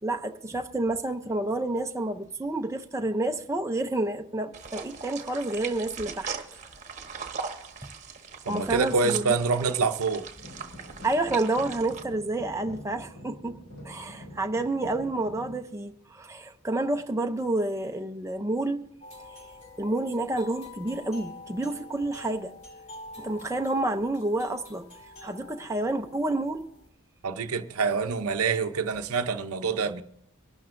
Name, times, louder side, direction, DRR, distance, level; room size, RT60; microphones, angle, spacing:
voice 1, 0.0-6.3 8.5-9.3 9.6-9.7 11.0-13.6 13.8-18.8 19.8-22.5 23.2-24.9 25.2-26.7, right 2 dB, 15° right, 0.5 m, -29 dB
sound 1, 4.5-12.0, right 5 dB, 35° right, 1.1 m, -40 dB
voice 2, 8.4-10.3 27.2-30.0, right 4 dB, 75° right, 0.7 m, -26 dB
sound 2, 10.4-15.6, left 1 dB, 60° left, 4.4 m, -45 dB
sound 3, 19.0-26.9, left 3 dB, 35° left, 2.2 m, -47 dB
23.5 x 12.0 x 2.6 m
head